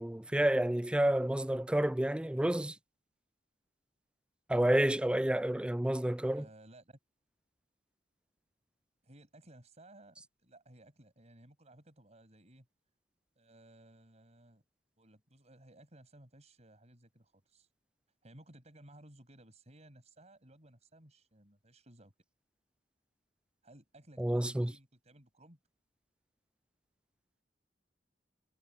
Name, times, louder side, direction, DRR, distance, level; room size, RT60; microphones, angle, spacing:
voice 1, 0.0-2.7 4.5-6.4 24.2-24.7, right 1 dB, 5° right, 0.3 m, -29 dB
voice 2, 6.3-7.0 9.0-12.7 13.4-14.6 15.0-17.7 18.2-22.1 23.6-25.6, right 1 dB, 40° right, 7.4 m, -58 dB
head